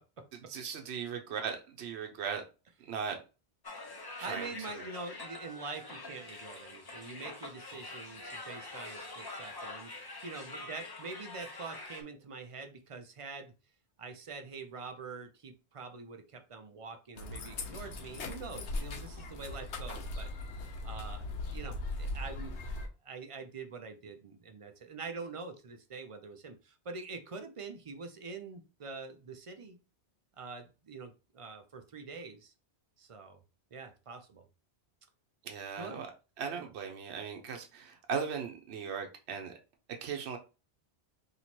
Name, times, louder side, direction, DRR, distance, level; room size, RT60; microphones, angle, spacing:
voice 1, 0.3-2.4 2.8-3.2 4.2-4.8 35.4-36.1 36.4-39.5 40.0-40.4, right 6 dB, 75° right, 4 dB, 1.0 m, -38 dB
sound 1, 3.6-12.0, left 2 dB, 30° left, 0.4 m, -45 dB
voice 2, 4.2-13.5 14.0-20.3 20.8-22.6 23.0-29.8 30.4-32.5 33.0-33.4 33.7-34.4 35.8-36.0 36.5-36.7, right 4 dB, 45° right, 7 dB, 0.5 m, -45 dB
sound 2, 17.2-22.9, left 2 dB, 85° left, 1.1 m, -39 dB
3.0 x 2.9 x 4.3 m, 0.31 s
omnidirectional pair, 1.1 m